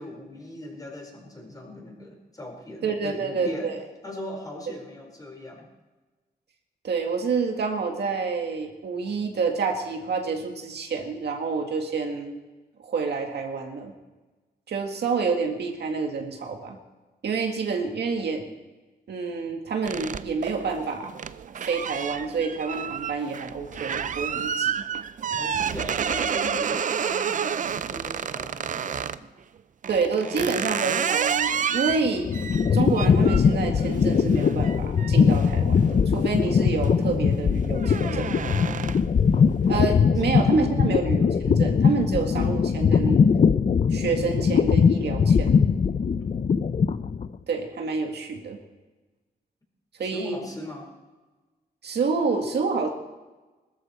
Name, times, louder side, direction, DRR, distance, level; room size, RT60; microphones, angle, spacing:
voice 1, 0.0-5.7 25.4-29.3 50.0-50.9, left 1 dB, 20° left, 0 dB, 4.8 m, -39 dB
voice 2, 2.8-3.8 6.8-12.4 12.8-13.9 14.7-16.8 17.2-18.5 19.1-21.1 21.5-24.8 29.9-32.3 32.7-38.4 39.7-43.2 43.9-45.6 47.5-48.6 50.0-50.4 51.8-52.9, right 4 dB, 75° right, 2 dB, 2.1 m, -28 dB
sound 1, 19.8-29.2 29.8-36.3 36.7-37.1 37.4-39.2, right 7 dB, 50° right, 0.5 m, -30 dB
sound 2, 31.9-47.3, left 6 dB, 40° left, 0.5 m, -21 dB
21.0 x 13.5 x 4.5 m, 1.2 s
wide cardioid pair, 140°, 17 cm